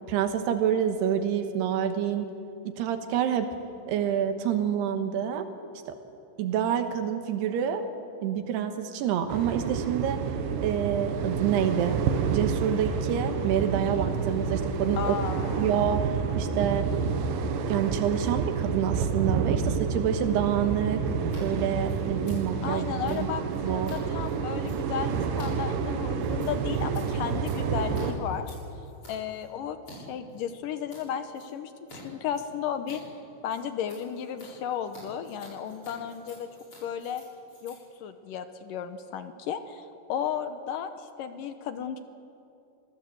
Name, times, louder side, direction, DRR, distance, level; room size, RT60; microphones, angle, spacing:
voice 1, 0.1-2.3 2.6-3.5 3.9-5.5 5.9-6.0 6.4-7.8 8.2-10.2 10.6-12.0 12.3-15.2 15.5-16.9 17.7-21.1 21.4-23.3 23.6-23.9, right 9 dB, 85° right, 7 dB, 3.4 m, -27 dB
sound 1, 9.3-28.1, right 6 dB, 65° right, 2.6 m, -29 dB
voice 2, 15.0-15.7 22.6-28.6 29.1-33.0 33.4-36.5 36.8-37.2 37.6-42.0, left 8 dB, 75° left, 9 dB, 2.1 m, -34 dB
Scissors, 21.2-21.4 21.7-30.0 30.3-31.0 31.3-32.0 32.3-39.0, left 1 dB, 30° left, 7.9 m, -52 dB
25.5 x 17.0 x 7.9 m, 2.7 s
omnidirectional pair, 4.6 m